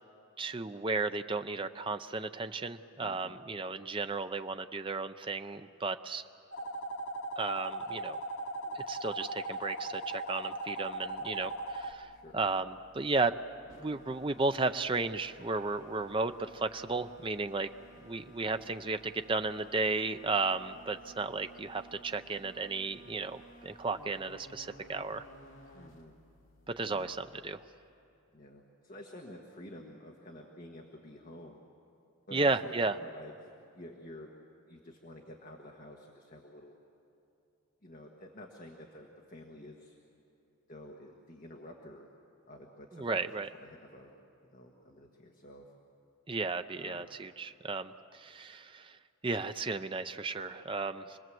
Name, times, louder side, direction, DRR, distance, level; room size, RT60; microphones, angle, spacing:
voice 1, 0.4-6.2 7.4-8.2 8.7-13.3 13.8-17.7 18.0-25.2 26.8-27.6 32.3-33.0 42.9-43.5 46.3-49.0 49.2-51.2, right 3 dB, 25° right, 9 dB, 0.5 m, -34 dB
voice 2, 3.0-3.4 12.1-12.4 18.4-18.6 25.7-26.1 26.9-27.1 28.3-31.6 32.3-32.7 33.0-33.3 33.7-34.3 34.7-36.8 37.8-40.0 40.7-42.1 42.5-43.2 43.6-44.1 44.4-45.6 46.7-47.1, left 1 dB, 40° left, 1 dB, 1.5 m, -50 dB
sound 1, 6.5-11.9, right 2 dB, 80° left, 1.4 m, -38 dB
sound 2, 10.8-28.0, right 1 dB, 60° left, 2.7 m, -57 dB
27.0 x 20.0 x 7.7 m, 2.6 s
head